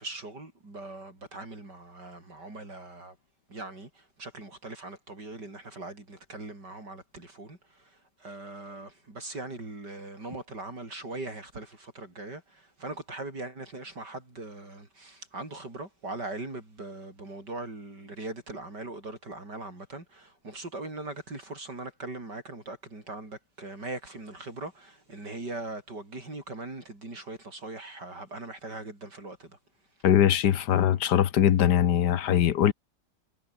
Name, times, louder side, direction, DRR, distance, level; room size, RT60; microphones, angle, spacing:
voice 1, 0.0-3.1 3.5-3.9 4.2-7.6 8.2-12.4 12.8-29.5, right 2 dB, 80° right, 7.5 m, -40 dB
voice 2, 30.0-32.7, left 10 dB, 75° left, 1.6 m, -22 dB
omnidirectional pair, 1.8 m